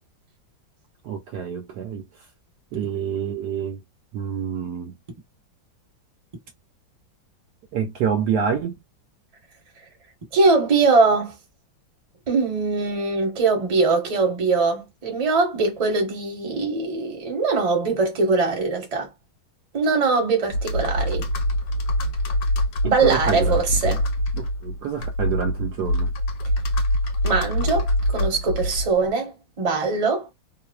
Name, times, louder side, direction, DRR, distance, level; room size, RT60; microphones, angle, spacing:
voice 1, 1.0-2.0 2.7-3.8 4.1-4.9 7.7-8.7 23.0-23.5 23.8-24.0 24.3-26.1, right 7 dB, 75° right, 1.0 m, -27 dB
voice 2, 10.3-11.4 12.3-19.1 19.7-21.2 22.8-24.0 27.2-30.3, right 4 dB, 25° right, 0.8 m, -22 dB
Computer keyboard, 20.5-29.1, equal, 75° left, 1.2 m, -24 dB
3.1 x 2.1 x 2.3 m
omnidirectional pair, 2.1 m